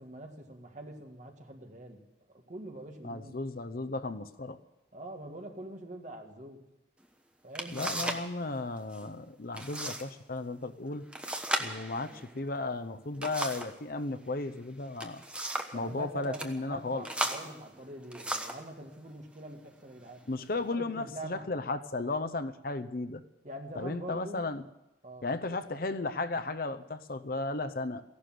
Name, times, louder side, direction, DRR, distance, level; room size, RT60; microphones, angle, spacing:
voice 1, 0.0-2.0 2.3-3.4 4.9-6.6 7.4-8.1 15.7-20.2 20.5-21.5 23.4-24.4 25.0-25.6, right 1 dB, 40° right, 3 dB, 2.0 m, -44 dB
voice 2, 3.0-4.6 7.7-11.0 11.6-15.2 15.7-17.1 20.3-23.2 23.7-24.6 25.2-28.0, left 2 dB, 55° left, 10 dB, 0.7 m, -35 dB
sound 1, 7.0-7.1 7.5-8.3 8.6-9.0 9.5-10.1 10.4-10.5 11.1-13.8 14.8-15.8 16.2-16.5 17.0-18.7 19.4-19.6 20.2-20.7, right 1 dB, 5° right, 1.1 m, -36 dB
15.5 x 11.5 x 7.8 m, 0.95 s
head